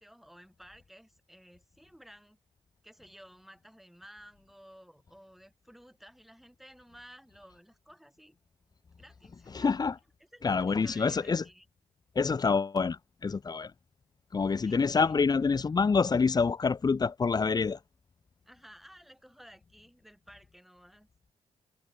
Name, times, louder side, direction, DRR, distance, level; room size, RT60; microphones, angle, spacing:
voice 1, 0.0-2.4 2.8-8.4 9.0-9.7 10.2-11.7 14.6-15.2 18.4-21.1, equal, ahead, 7.6 m, -54 dB
voice 2, 9.5-9.9 10.4-11.4 12.1-13.0 13.2-13.7 14.3-17.8, left 5 dB, 35° left, 0.9 m, -26 dB
cardioid pair, 70°, 12 cm